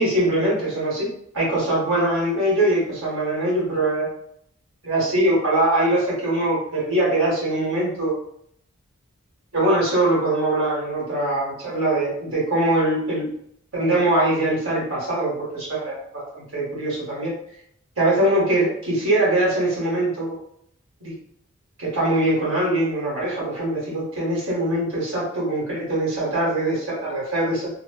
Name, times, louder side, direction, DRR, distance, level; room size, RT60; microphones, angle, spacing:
voice 1, 0.0-4.1 4.8-8.1 9.5-13.3 13.7-17.3 18.0-20.4 21.0-21.1 21.8-27.7, right 1 dB, 65° right, -6 dB, 1.3 m, -22 dB
3.0 x 2.1 x 2.2 m, 0.70 s
head